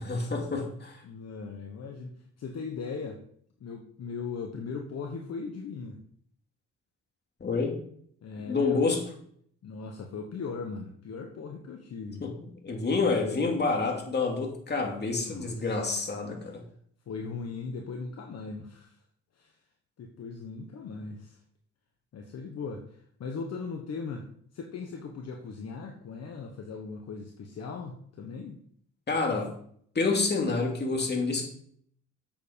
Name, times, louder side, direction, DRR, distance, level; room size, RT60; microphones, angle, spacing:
voice 1, 0.1-1.0 7.4-7.8 8.5-9.1 12.2-12.3 12.6-16.6 29.1-29.5 29.9-31.5, left 3 dB, 35° left, 1 dB, 2.7 m, -28 dB
voice 2, 1.0-2.1 2.4-3.2 3.6-6.0 8.2-8.8 9.6-12.2 15.2-15.7 17.1-19.0 19.4-19.5 20.0-21.4 22.1-24.3 24.5-28.6, left 4 dB, 55° left, 2 dB, 1.3 m, -38 dB
7.9 x 7.2 x 5.2 m, 0.62 s
cardioid pair, 90°, 30 cm